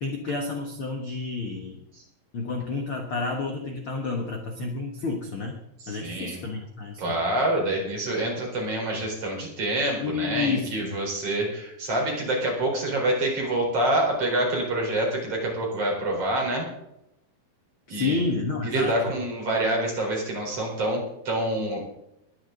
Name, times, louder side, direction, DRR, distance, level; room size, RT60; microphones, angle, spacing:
voice 1, 0.0-1.8 2.3-5.6 5.9-7.2 10.0-11.0 17.9-19.1, left 4 dB, 50° left, 3 dB, 1.7 m, -30 dB
voice 2, 5.8-6.4 7.0-16.7 17.9-18.2 18.6-21.8, right 1 dB, 40° right, -1 dB, 5.2 m, -26 dB
21.5 x 11.0 x 3.9 m, 0.81 s
omnidirectional pair, 4.1 m